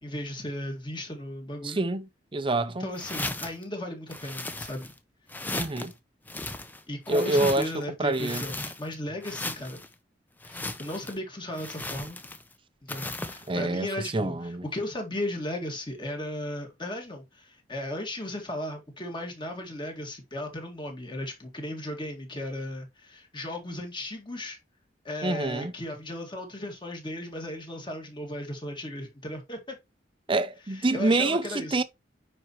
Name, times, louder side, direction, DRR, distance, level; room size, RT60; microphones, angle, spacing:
voice 1, 0.0-1.8 2.8-4.9 6.9-9.8 10.4-12.2 12.8-24.6 25.0-29.8 30.7-31.8, left 1 dB, 25° left, 2.0 m, -36 dB
voice 2, 1.6-2.0 2.3-2.9 5.5-5.9 7.1-8.4 13.5-14.6 25.2-25.7 30.3-31.8, right 2 dB, 30° right, 0.6 m, -26 dB
sound 1, 2.9-3.6 4.1-5.0 5.3-5.9 6.3-7.8 8.1-8.9 9.2-9.9 10.4-11.2 11.5-12.5 12.9-13.5, left 2 dB, 10° left, 0.7 m, -36 dB
9.6 x 4.4 x 3.0 m
head